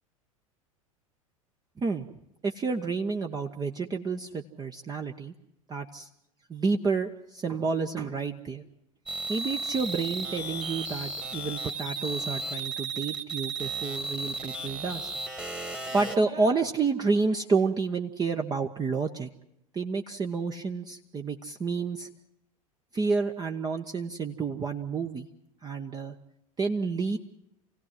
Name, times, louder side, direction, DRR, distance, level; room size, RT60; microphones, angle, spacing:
voice 1, 2.4-5.3 5.7-6.1 6.5-8.6 9.3-15.1 15.9-19.3 19.7-22.1 22.9-25.3 25.6-26.1 26.6-27.2, right 4 dB, 20° right, 4 dB, 1.1 m, -29 dB
sound 1, 9.1-16.2, right 3 dB, 5° right, 1.7 m, -34 dB
28.0 x 17.0 x 7.5 m, 0.82 s
figure-of-eight pair, 80°, 18 cm